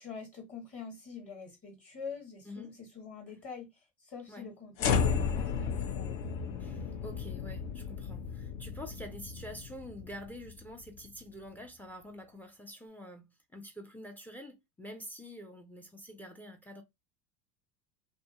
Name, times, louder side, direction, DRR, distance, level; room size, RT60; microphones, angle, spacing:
voice 1, 0.0-3.7 4.0-6.4, left 5 dB, 30° left, 1.2 m, -45 dB
sound 1, 4.8-11.1, left 6 dB, 65° left, 0.6 m, -34 dB
voice 2, 6.6-16.8, equal, 5° left, 0.3 m, -47 dB
2.5 x 2.3 x 2.8 m
hypercardioid pair, 85°, 43 cm